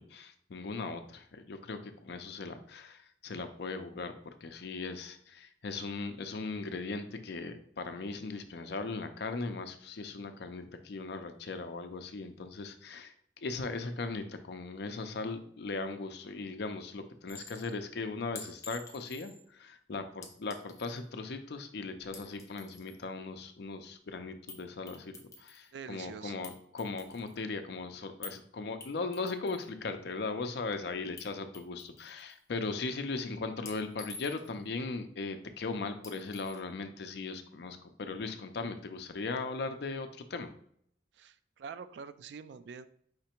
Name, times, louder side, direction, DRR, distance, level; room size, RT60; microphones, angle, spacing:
voice 1, 0.0-4.1 4.4-13.1 13.4-40.5, left 3 dB, 65° left, 8 dB, 0.5 m, -38 dB
Chink clink, 17.3-17.7 18.4-19.4 20.2-21.0 22.0-23.0 24.5-24.6 24.9-25.7 26.4-27.4 28.2-28.4 28.8-29.7 31.2-31.3 31.5-32.4 33.7-34.6 36.0-36.6, left 4 dB, 20° left, 0.6 m, -48 dB
voice 2, 25.7-26.5 41.1-42.9, right 6 dB, 70° right, 13 dB, 0.3 m, -45 dB
5.0 x 3.3 x 2.9 m, 0.67 s
head